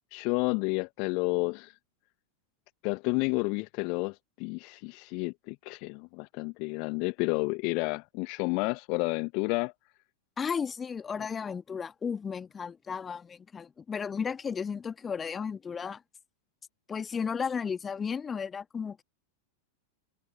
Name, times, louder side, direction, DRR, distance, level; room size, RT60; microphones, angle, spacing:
voice 1, 0.1-1.7 2.8-9.7, left 32 dB, 45° left, 1.1 m, -30 dB
voice 2, 10.4-16.0 16.9-19.0, left 6 dB, 20° left, 1.8 m, -34 dB
figure-of-eight pair, 90°, 0 cm